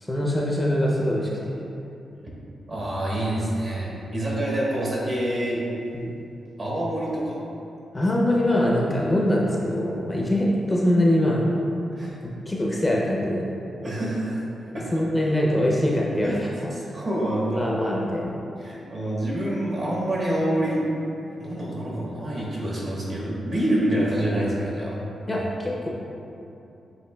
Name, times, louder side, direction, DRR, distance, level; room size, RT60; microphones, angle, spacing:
voice 1, 0.0-1.6 5.9-6.1 7.9-11.5 12.5-13.5 14.9-16.8 17.6-18.4 25.3-25.9, left 1 dB, 15° left, -3 dB, 0.5 m, -23 dB
voice 2, 2.7-5.6 6.6-7.4 11.9-12.2 13.8-14.9 16.2-16.3 16.7-17.6 18.6-20.9 21.4-25.0 25.3-25.5, right 1 dB, 40° right, -5 dB, 1.1 m, -27 dB
7.9 x 2.7 x 2.2 m, 2.8 s
cardioid pair, 105°, 0 cm